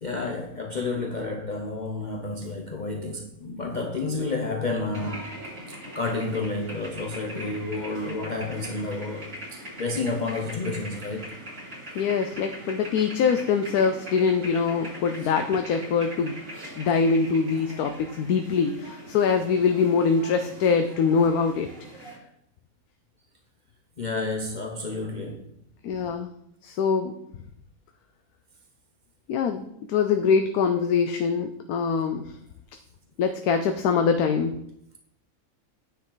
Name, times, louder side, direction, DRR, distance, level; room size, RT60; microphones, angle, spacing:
voice 1, 0.0-5.4 5.7-11.4 24.0-25.5, left 3 dB, 40° left, 0.7 m, -30 dB
sound 1, 4.9-22.2, equal, 80° right, 5.2 m, -41 dB
voice 2, 11.9-16.4 16.8-21.7 22.0-22.1 25.8-26.3 26.6-27.1 29.3-32.4 33.2-34.6, left 5 dB, 85° left, 1.2 m, -23 dB
9.8 x 7.4 x 3.9 m
omnidirectional pair, 1.5 m